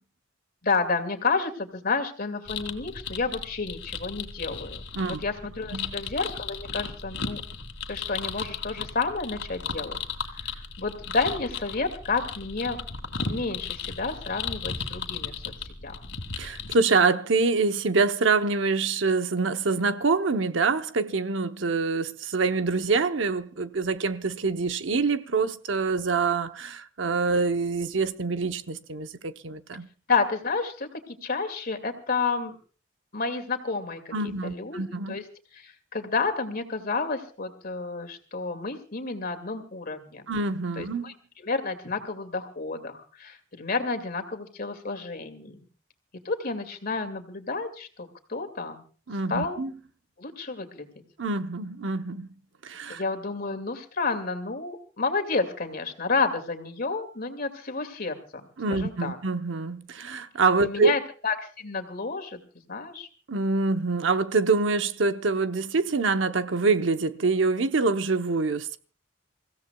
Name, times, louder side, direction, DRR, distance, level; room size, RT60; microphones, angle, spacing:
voice 1, 0.6-4.8 5.1-7.4 7.9-10.0 10.3-12.8 13.3-15.5 15.8-16.0 30.1-30.9 31.2-32.5 33.1-34.1 34.4-35.2 35.5-40.2 40.8-41.1 41.4-45.6 46.2-48.8 49.3-49.6 50.2-50.9 52.9-59.2 60.6-62.4 62.7-63.1, left 4 dB, 50° left, 2.2 m, -30 dB
sound 1, 2.5-16.7, left 5 dB, 80° left, 2.2 m, -35 dB
voice 2, 16.4-29.9 34.1-35.2 40.3-41.1 49.1-49.7 51.2-52.3 52.6-53.0 58.6-60.9 63.3-68.8, right 4 dB, 70° right, 0.8 m, -25 dB
28.5 x 16.0 x 2.3 m
head